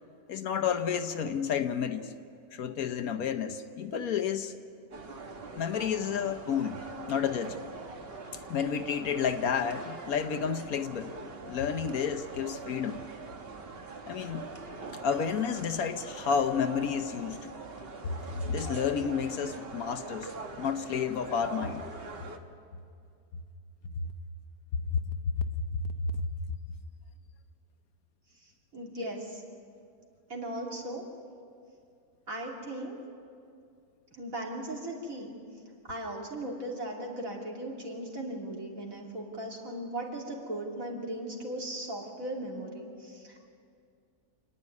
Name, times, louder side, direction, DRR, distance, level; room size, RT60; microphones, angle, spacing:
voice 1, 0.3-2.1 2.5-4.5 5.5-6.8 7.1-7.6 8.5-11.1 11.4-13.0 14.1-14.5 15.0-17.4 18.0-18.2 18.4-20.3 20.6-21.8 24.0-24.1 24.7-26.3, left 7 dB, 70° left, 9 dB, 1.3 m, -31 dB
sound 1, 4.9-22.4, right 3 dB, 40° right, 1.3 m, -43 dB
voice 2, 28.4-29.4 30.3-31.1 32.3-33.0 34.1-35.4 35.9-43.5, right 1 dB, 60° right, -1 dB, 3.2 m, -38 dB
27.5 x 10.0 x 9.6 m, 2.3 s
omnidirectional pair, 1.6 m